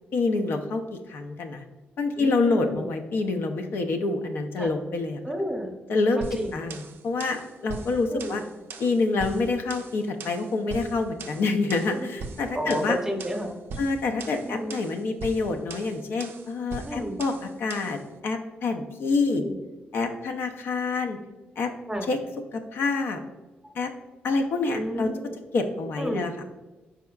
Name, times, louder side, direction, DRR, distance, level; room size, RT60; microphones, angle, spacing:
voice 1, 0.1-1.6 2.0-5.2 5.9-6.2 6.5-8.4 8.8-13.0 13.8-19.4 19.9-21.2 21.6-21.7 22.1-22.2 22.5-23.2 23.8-23.9 24.2-25.1 25.5-26.3, left 3 dB, 70° left, 4 dB, 0.5 m, -27 dB
voice 2, 2.2-2.9 4.6-4.7 5.2-5.7 6.2-6.7 8.1-8.4 11.9-12.1 12.5-13.5 14.4-14.8 16.8-17.2 19.3-19.6 21.9-22.1 24.7-25.4 26.0-26.3, equal, 15° right, 2 dB, 0.8 m, -32 dB
sound 1, 6.2-18.0, right 4 dB, 70° right, 0.4 m, -40 dB
4.7 x 4.2 x 2.3 m, 1.1 s
cardioid pair, 80°, 4 cm